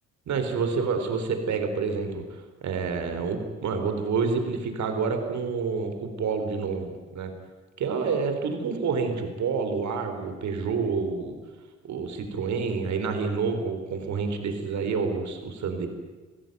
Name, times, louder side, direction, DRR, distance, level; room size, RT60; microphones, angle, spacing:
voice 1, 0.3-7.3 7.8-11.4 11.9-15.9, right 5 dB, 70° right, 6 dB, 4.3 m, -28 dB
29.0 x 17.0 x 9.4 m, 1.3 s
cardioid pair, 90°, 30 cm